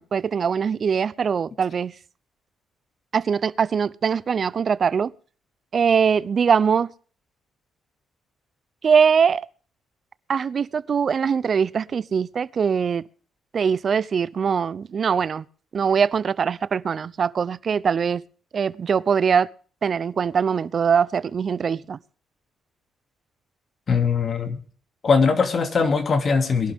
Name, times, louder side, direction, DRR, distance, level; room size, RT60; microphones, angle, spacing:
voice 1, 0.0-1.9 3.1-5.1 5.7-6.9 8.8-9.5 10.3-13.0 13.5-15.4 15.7-18.2 18.5-19.5 19.8-22.0, right 6 dB, 45° right, 0.7 m, -22 dB
voice 2, 23.9-24.6 25.0-26.7, left 5 dB, 45° left, 2.6 m, -20 dB
21.5 x 11.5 x 3.6 m
cardioid pair, 90°, 0 cm